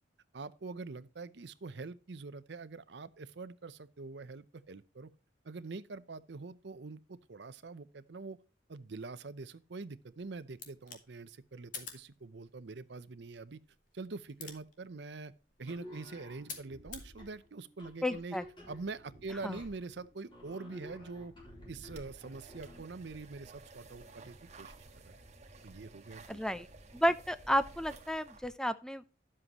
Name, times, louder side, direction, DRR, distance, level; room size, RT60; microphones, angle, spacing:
voice 1, 0.3-5.1 5.4-8.4 8.7-13.6 13.9-15.3 15.6-18.4 18.7-21.3 21.7-24.7 25.0-25.1 25.6-26.4, right 3 dB, 65° right, 0.6 m, -44 dB
sound 1, 10.0-17.1, left 5 dB, 45° left, 1.7 m, -51 dB
sound 2, 15.6-22.9, equal, 25° left, 3.7 m, -52 dB
voice 2, 18.0-18.4 19.4-19.6 26.3-26.7 26.9-29.1, equal, 5° left, 0.5 m, -32 dB
sound 3, 21.8-28.5, right 2 dB, 40° right, 1.2 m, -54 dB
11.0 x 7.6 x 2.9 m
head